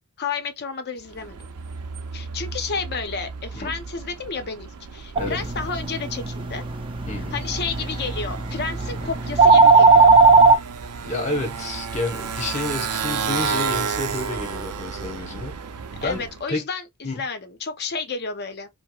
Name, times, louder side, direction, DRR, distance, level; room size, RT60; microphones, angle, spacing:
voice 1, 0.2-1.4 2.1-6.6 7.3-10.1 16.0-18.7, left 5 dB, 50° left, 0.7 m, -31 dB
Motorcycle, 1.0-16.4, right 6 dB, 90° right, 0.5 m, -33 dB
sound 1, 5.2-10.6, right 4 dB, 25° right, 0.4 m, -17 dB
voice 2, 7.1-7.4 11.0-15.5 16.0-16.7 17.0-17.3, left 2 dB, 30° left, 1.0 m, -30 dB
4.6 x 2.0 x 2.3 m
head